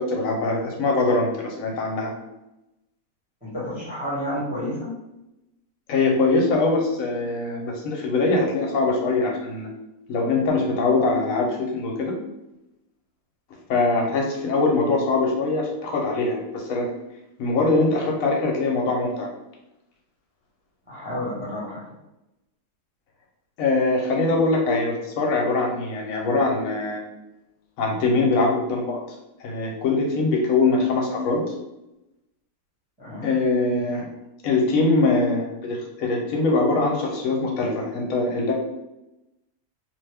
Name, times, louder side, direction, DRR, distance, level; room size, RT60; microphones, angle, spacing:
voice 1, 0.0-2.1 5.9-9.7 10.1-12.1 13.7-16.9 17.4-19.3 23.6-27.0 27.8-29.0 29.4-31.4 33.2-34.1 34.4-38.5, left 3 dB, 70° left, 0 dB, 1.1 m, -22 dB
voice 2, 3.4-4.9 20.9-21.8 33.0-33.3, equal, 5° right, -8 dB, 0.9 m, -30 dB
2.8 x 2.2 x 3.3 m, 0.93 s
omnidirectional pair, 1.6 m